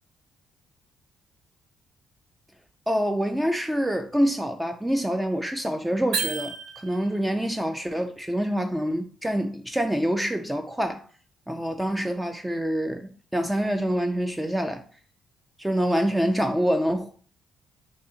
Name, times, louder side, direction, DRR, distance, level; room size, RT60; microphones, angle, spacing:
voice 1, 2.9-11.0 11.5-14.8 15.6-17.1, equal, 10° right, 0.3 m, -26 dB
sound 1, 6.1-7.3, right 6 dB, 85° right, 0.6 m, -31 dB
3.7 x 2.4 x 3.8 m
cardioid pair, 90°, 0 cm